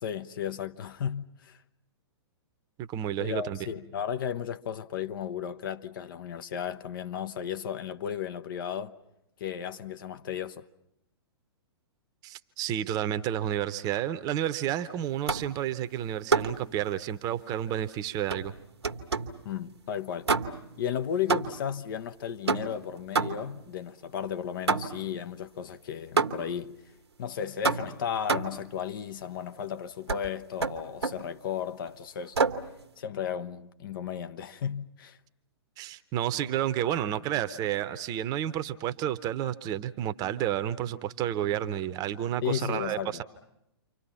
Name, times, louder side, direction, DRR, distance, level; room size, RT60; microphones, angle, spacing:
voice 1, 0.0-1.6 3.2-8.9 9.4-10.6 19.4-20.3 20.8-26.7 27.2-32.4 33.0-35.2 42.4-43.2, left 8 dB, 50° left, 0.9 m, -34 dB
voice 2, 2.8-3.6 12.2-18.5 35.8-43.2, right 11 dB, 25° right, 0.9 m, -31 dB
sound 1, 15.3-15.6 16.3-16.7 18.3-19.4 20.3-20.8 21.3-21.8 22.5-23.6 24.7-25.1 26.2-26.6 27.6-28.7 30.1-30.3 30.6-31.3 32.4-32.7, right 4 dB, 75° right, 1.1 m, -28 dB
29.5 x 25.0 x 5.7 m
figure-of-eight pair, 115°, 14 cm